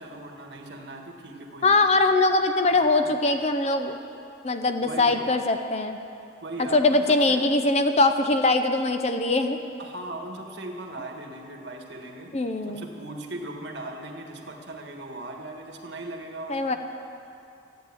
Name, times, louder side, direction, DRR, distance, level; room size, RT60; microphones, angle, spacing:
voice 1, 0.0-2.1 2.7-3.1 4.5-5.3 6.4-7.5 9.8-12.4 12.7-16.8, right 1 dB, 60° right, 2 dB, 1.5 m, -39 dB
voice 2, 1.6-4.0 4.4-6.0 6.6-9.6 12.3-12.9 16.5-16.8, left 2 dB, 35° left, 7 dB, 0.6 m, -22 dB
14.0 x 9.0 x 8.5 m, 2.6 s
head